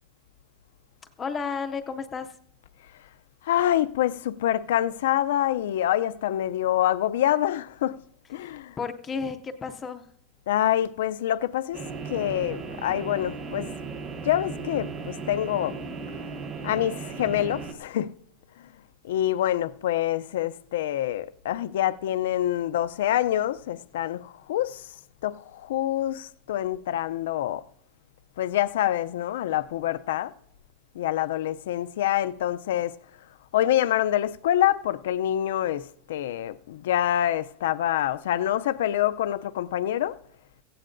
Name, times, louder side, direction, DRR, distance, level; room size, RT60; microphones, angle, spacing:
voice 1, 1.2-2.3 8.4-8.5 8.8-10.0, left 5 dB, 15° left, 0.5 m, -32 dB
voice 2, 3.5-8.0 8.3-8.7 10.5-11.8 12.1-13.7 14.2-15.8 16.6-18.1 19.0-24.8 25.2-27.6 28.4-30.3 31.0-33.0 33.5-40.2, left 12 dB, 75° left, 0.4 m, -26 dB
sound 1, 11.7-17.7, right 4 dB, 20° right, 0.9 m, -36 dB
16.5 x 15.5 x 2.6 m
supercardioid pair, 180°, 0 cm